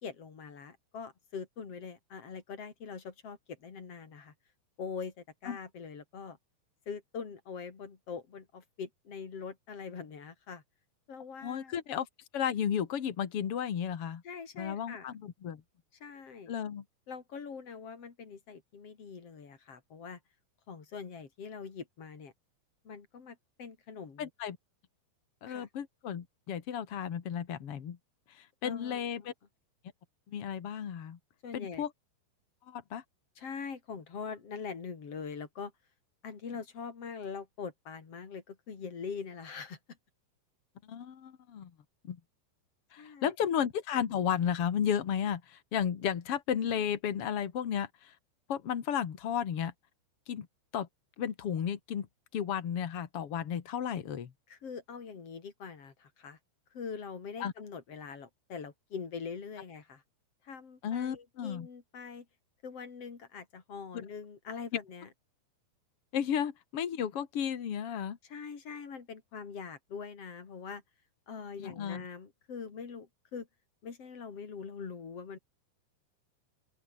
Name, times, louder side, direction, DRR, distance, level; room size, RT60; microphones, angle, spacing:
voice 1, 0.0-4.3 4.8-6.4 6.9-10.6 11.1-11.8 14.2-15.1 16.0-16.5 17.1-20.2 20.7-22.3 22.8-24.3 25.5-25.7 28.6-29.0 31.4-31.9 33.4-35.7 36.2-39.8 43.0-43.3 54.5-56.4 56.7-60.0 60.4-62.3 62.6-65.1 68.2-70.8 71.3-73.5 73.8-75.4, left 5 dB, 35° left, 3.6 m, -43 dB
voice 2, 11.4-12.1 12.3-14.2 14.6-15.6 16.5-16.8 24.2-24.6 25.4-28.0 28.3-29.3 30.3-31.2 31.5-31.9 32.7-33.0 40.9-41.7 42.0-42.2 42.9-48.1 48.5-49.7 50.3-50.5 50.7-50.9 51.2-52.1 52.3-54.3 57.4-57.5 60.8-61.7 63.9-64.0 66.1-68.2 71.6-72.0, left 8 dB, 65° left, 1.4 m, -33 dB
open air
omnidirectional pair, 5.6 m